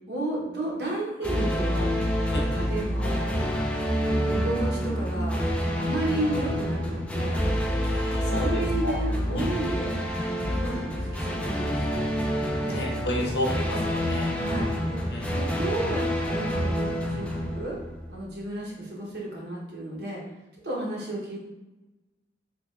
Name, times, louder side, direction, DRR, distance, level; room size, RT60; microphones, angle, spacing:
voice 1, 0.1-2.0 2.5-3.3 4.0-5.5 5.7-7.4 8.2-9.9 10.4-12.0 12.6-12.8 13.2-13.3 14.3-15.0 15.3-17.8 18.1-20.2 20.6-21.4, right 1 dB, 65° right, -3 dB, 0.8 m, -33 dB
sound 1, 1.2-18.3, equal, 5° left, 0.3 m, -27 dB
voice 2, 7.9-9.0 9.3-9.5 12.7-14.4 15.1-15.2, equal, 70° left, -1 dB, 0.8 m, -32 dB
3.3 x 2.2 x 3.1 m, 1.0 s
head